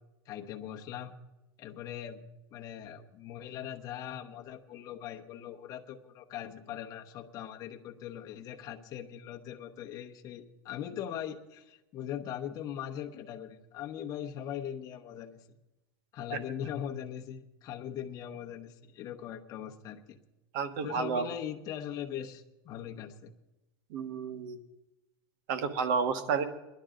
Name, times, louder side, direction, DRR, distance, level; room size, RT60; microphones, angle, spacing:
voice 1, 0.3-1.1 1.6-2.2 2.5-15.5 16.1-20.2 20.8-23.3, left 10 dB, 30° left, 3 dB, 1.0 m, -40 dB
voice 2, 20.5-21.3 23.9-24.6 25.5-26.4, right 5 dB, 50° right, 8 dB, 1.3 m, -31 dB
19.0 x 11.5 x 3.8 m, 0.98 s
supercardioid pair, 160°, 13 cm